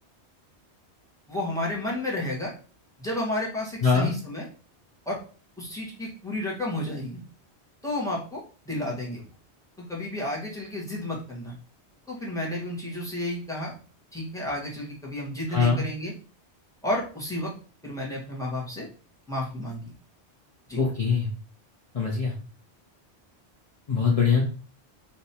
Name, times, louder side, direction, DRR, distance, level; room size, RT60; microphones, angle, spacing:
voice 1, 1.3-2.5 3.0-4.5 5.0-5.2 5.6-7.2 7.8-9.2 9.9-11.5 12.1-13.7 14.1-16.1 16.8-17.5 17.8-18.9 19.3-19.8 20.7-20.8, left 1 dB, 5° left, -5 dB, 1.5 m, -31 dB
voice 2, 3.8-4.1 15.5-15.8 20.8-21.3 21.9-22.3 23.9-24.4, left 5 dB, 35° left, -5 dB, 0.9 m, -22 dB
3.5 x 3.0 x 4.3 m, 0.37 s
omnidirectional pair, 1.1 m